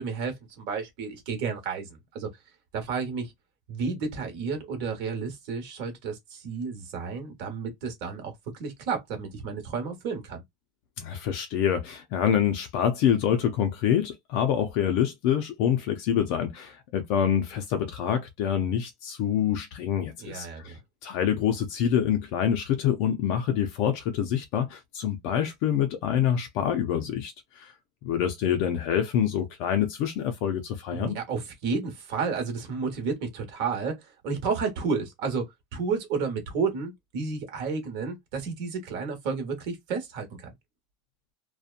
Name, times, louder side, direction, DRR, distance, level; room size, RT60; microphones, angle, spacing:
voice 1, 0.0-2.3 2.7-3.3 3.7-8.3 8.6-10.4 20.2-20.8 27.0-27.1 30.9-40.5, right 5 dB, 50° right, 1.1 m, -31 dB
voice 2, 11.0-27.7 28.0-31.2, left 9 dB, 45° left, 0.4 m, -26 dB
2.7 x 2.1 x 2.4 m
supercardioid pair, 175°, 0 cm